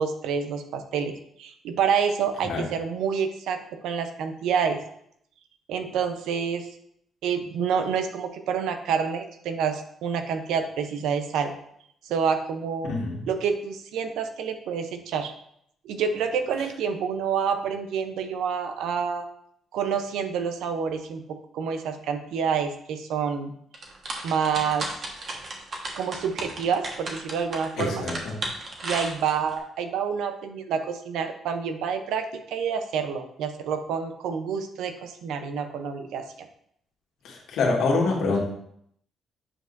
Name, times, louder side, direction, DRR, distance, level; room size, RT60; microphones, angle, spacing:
voice 1, 0.0-4.8 5.7-6.7 7.2-11.5 12.0-12.9 13.3-15.3 15.8-19.3 19.7-23.5 24.2-24.9 25.9-28.1 28.8-36.5, right 6 dB, 85° right, 8 dB, 0.7 m, -28 dB
voice 2, 12.8-13.3 27.8-28.4 37.2-38.4, left 3 dB, 80° left, -2 dB, 1.8 m, -25 dB
sound 1, 23.7-29.6, right 2 dB, 50° right, 1.4 m, -34 dB
8.6 x 5.2 x 2.6 m, 0.70 s
cardioid pair, 90°, 0 cm